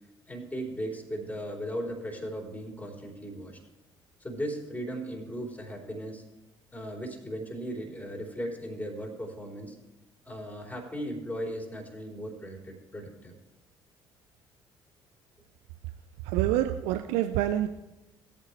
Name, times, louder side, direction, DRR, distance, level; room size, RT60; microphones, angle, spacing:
voice 1, 0.3-3.6 4.2-6.2 6.7-9.8 10.2-13.3, equal, 10° left, 0 dB, 3.8 m, -37 dB
voice 2, 16.2-17.7, right 13 dB, 65° right, 10 dB, 0.5 m, -26 dB
17.5 x 9.0 x 3.3 m, 0.99 s
figure-of-eight pair, 50°, 12 cm